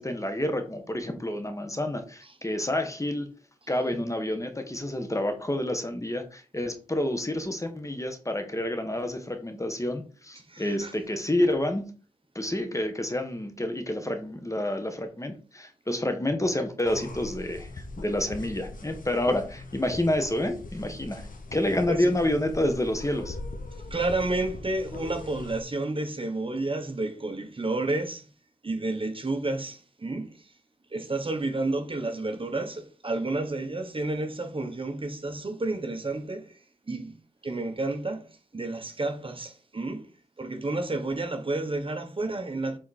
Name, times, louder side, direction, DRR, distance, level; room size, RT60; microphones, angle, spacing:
voice 1, 0.0-3.3 3.7-11.9 12.3-17.7 18.0-23.4, left 1 dB, 20° left, 1.4 m, -29 dB
voice 2, 10.5-10.9 21.9-22.1 23.9-28.3 28.6-30.5 30.9-36.6 36.9-37.1 37.4-42.8, right 2 dB, 35° right, 1.3 m, -31 dB
sound 1, 16.9-25.6, left 2 dB, 65° left, 1.4 m, -40 dB
7.6 x 4.2 x 4.3 m
wide cardioid pair, 70°, 15 cm